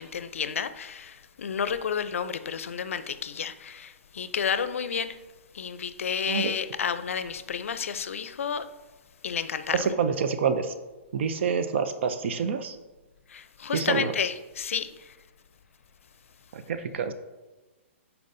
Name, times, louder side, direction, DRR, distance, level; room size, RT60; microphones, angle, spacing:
voice 1, 0.0-5.2 5.5-8.7 9.2-9.9 13.3-15.2, left 7 dB, 80° left, 0.5 m, -31 dB
voice 2, 9.7-10.7 11.1-12.8 13.7-14.1 16.5-17.1, right 6 dB, 60° right, 0.5 m, -27 dB
11.0 x 4.4 x 2.6 m
hypercardioid pair, 145°, 7 cm